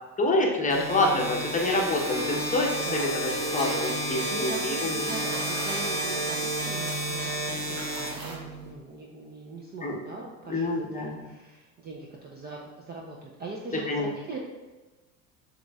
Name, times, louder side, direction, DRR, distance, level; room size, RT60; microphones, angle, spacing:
voice 1, 0.2-5.0 9.8-10.0 10.5-11.2 13.9-14.1, left 2 dB, 15° left, -1 dB, 0.8 m, -27 dB
sound 1, 0.7-8.7, right 1 dB, 65° right, 1.0 m, -31 dB
sound 2, 1.6-8.4, right 2 dB, 85° right, 1.2 m, -39 dB
voice 2, 2.8-3.2 4.3-14.4, right 3 dB, 20° right, -2 dB, 0.5 m, -41 dB
7.0 x 3.1 x 2.3 m, 1.2 s
figure-of-eight pair, 75°, 49 cm